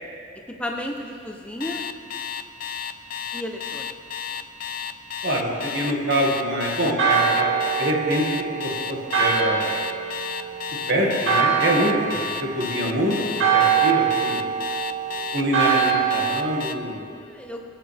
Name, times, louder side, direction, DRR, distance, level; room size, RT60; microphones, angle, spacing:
voice 1, 0.6-1.9 3.3-3.9 17.2-17.6, left 1 dB, 5° left, 2 dB, 0.9 m, -33 dB
Alarm, 1.6-16.8, left 8 dB, 45° left, 0.4 m, -32 dB
voice 2, 5.2-7.5 7.8-8.2 8.5-9.7 10.9-14.5 15.3-17.1, equal, 55° right, -2 dB, 2.2 m, -25 dB
Church bell, 7.0-16.6, right 7 dB, 80° right, 1.5 m, -24 dB
19.5 x 9.5 x 3.6 m, 2.5 s
head